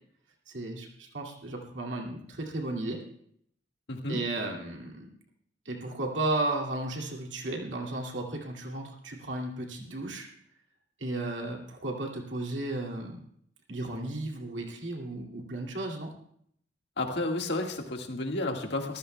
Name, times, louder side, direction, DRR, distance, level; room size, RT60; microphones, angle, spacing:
voice 1, 0.5-3.0 4.1-5.1 5.7-10.3 11.0-13.2 13.7-16.1, right 2 dB, 80° right, 0 dB, 2.3 m, -34 dB
voice 2, 3.9-4.2 17.0-19.0, left 2 dB, 65° left, 3 dB, 1.7 m, -31 dB
25.0 x 14.5 x 2.2 m, 0.68 s
head